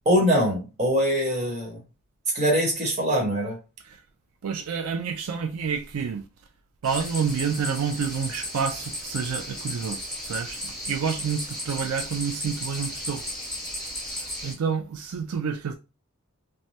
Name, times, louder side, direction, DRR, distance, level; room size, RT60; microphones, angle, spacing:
voice 1, 0.0-1.8 2.3-3.6, equal, 30° right, 1.2 m, -23 dB
voice 2, 4.4-6.3 6.8-13.2 14.2-15.7, right 6 dB, 90° right, 0.4 m, -29 dB
sound 1, 6.8-14.5, left 1 dB, ahead, 1.0 m, -35 dB
3.2 x 2.2 x 2.7 m
head